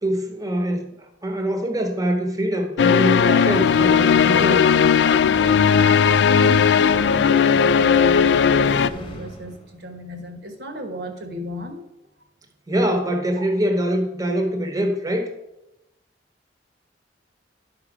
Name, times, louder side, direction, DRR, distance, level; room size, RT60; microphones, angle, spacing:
voice 1, 0.0-4.7 12.7-15.3, right 1 dB, 20° right, 5 dB, 1.1 m, -24 dB
sound 1, 2.8-8.9, left 7 dB, 65° left, 0.3 m, -17 dB
sound 2, 3.1-9.8, left 1 dB, 25° left, 1.1 m, -37 dB
voice 2, 5.4-11.8 12.9-13.1 13.4-13.5, equal, 60° right, 6 dB, 1.3 m, -35 dB
11.5 x 5.1 x 4.9 m, 0.90 s
head